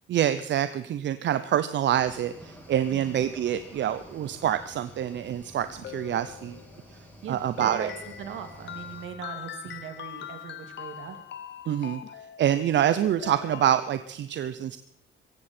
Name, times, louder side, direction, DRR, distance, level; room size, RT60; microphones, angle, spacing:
voice 1, 0.1-6.6 7.3-7.9 11.7-12.0 12.4-14.8, right 10 dB, 65° right, 12 dB, 0.7 m, -26 dB
Cricket / Waves surf, 1.9-9.1, equal, 10° left, 6.9 m, -49 dB
voice 2, 2.9-3.2 7.2-11.2, right 8 dB, 80° right, 6 dB, 2.4 m, -40 dB
sound 1, 5.5-6.9 7.6-13.8, left 10 dB, 65° left, 1.1 m, -42 dB
17.5 x 15.0 x 4.4 m, 0.78 s
cardioid pair, 90°, 20 cm